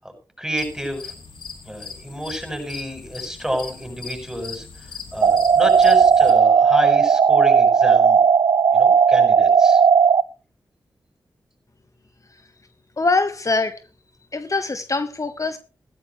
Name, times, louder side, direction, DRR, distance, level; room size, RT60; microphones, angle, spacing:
voice 1, 0.0-1.1 1.7-4.7 5.1-8.2 8.7-9.8, equal, 5° right, 7.7 m, -29 dB
sound 1, 0.6-6.3, left 5 dB, 80° left, 2.7 m, -39 dB
sound 2, 5.2-10.2, right 6 dB, 65° right, 0.5 m, -15 dB
voice 2, 13.0-13.8 14.3-15.6, left 3 dB, 40° left, 1.0 m, -23 dB
16.5 x 12.5 x 3.2 m
cardioid pair, 45°, 8 cm